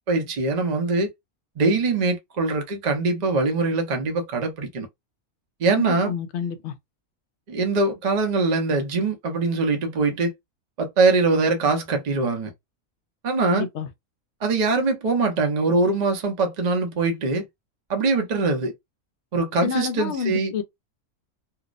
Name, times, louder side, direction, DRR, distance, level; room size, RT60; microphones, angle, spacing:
voice 1, 0.1-1.1 1.6-4.9 5.6-6.1 7.5-10.3 10.8-12.5 13.2-13.6 14.4-17.4 17.9-18.7 19.3-20.5, right 3 dB, 45° right, 0.5 m, -22 dB
voice 2, 5.8-6.7 13.5-13.9 19.6-20.6, left 7 dB, 65° left, 0.8 m, -28 dB
2.7 x 2.0 x 2.4 m
omnidirectional pair, 1.5 m